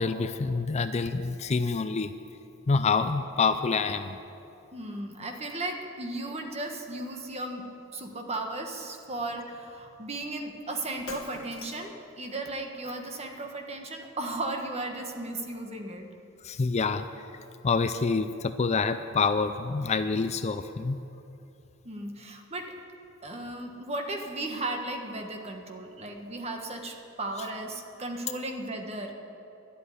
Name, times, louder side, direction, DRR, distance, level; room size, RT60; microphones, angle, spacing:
voice 1, 0.0-2.1 2.7-4.2 16.4-17.1 17.6-21.0, left 4 dB, 30° left, 10 dB, 0.4 m, -27 dB
voice 2, 4.7-16.1 21.8-22.7 23.2-29.1, right 2 dB, 30° right, 3 dB, 1.4 m, -35 dB
Shatter, 11.1-12.0, left 5 dB, 85° left, 1.6 m, -44 dB
12.0 x 8.4 x 9.7 m, 2.8 s
head